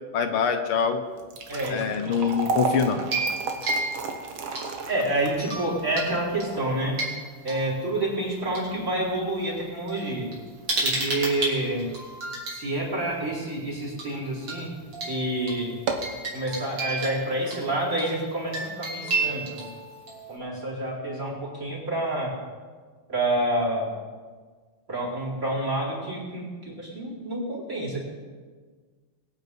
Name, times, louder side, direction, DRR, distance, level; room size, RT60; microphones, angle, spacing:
voice 1, 0.1-1.0 1.7-3.0, left 6 dB, 75° left, 6 dB, 1.9 m, -24 dB
sound 1, 1.1-13.4 13.8-13.9 14.6-14.8 15.1-15.2 15.7-16.2, right 4 dB, 70° right, 2.1 m, -34 dB
voice 2, 1.5-1.8 4.9-7.0 7.4-10.3 10.8-11.9 12.5-14.7 15.0-15.7 16.3-19.6 20.3-22.3 23.1-23.9 24.9-28.0, right 1 dB, 35° right, -4 dB, 4.7 m, -28 dB
sound 2, 3.0-5.0 5.4-6.1 6.4-8.6 9.4-9.5 9.9-12.6 14.0-14.2 14.5-14.6 14.9-20.4, right 3 dB, 85° right, 4.4 m, -32 dB
21.5 x 8.8 x 5.3 m, 1.5 s
omnidirectional pair, 2.4 m